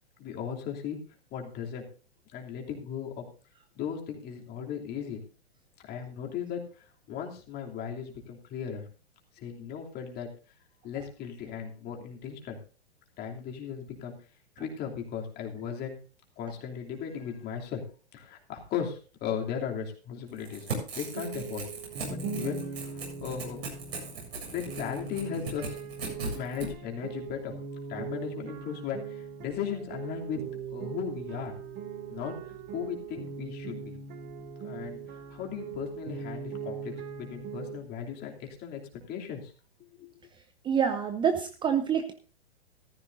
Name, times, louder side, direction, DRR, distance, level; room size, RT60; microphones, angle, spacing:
voice 1, 0.2-1.0 1.3-1.8 2.3-3.2 3.7-5.2 5.9-8.8 9.3-10.3 10.8-12.6 13.2-14.1 14.6-16.0 16.4-17.8 18.1-20.7 20.9-21.7 22.1-23.6 24.5-25.8 26.3-30.4 30.7-31.5 32.1-32.3 32.7-33.9 34.6-35.0 35.3-38.8 39.1-39.5 40.0-40.1, left 8 dB, 30° left, 1 dB, 3.0 m, -37 dB
Crackle / Tearing, 20.3-26.7, right 3 dB, 70° right, 7.4 m, -38 dB
sound 1, 21.1-37.8, right 5 dB, 30° right, 1.9 m, -40 dB
voice 2, 40.6-42.1, right 7 dB, 15° right, 9 dB, 0.7 m, -27 dB
14.5 x 14.5 x 2.6 m, 0.37 s
figure-of-eight pair, 110°, 32 cm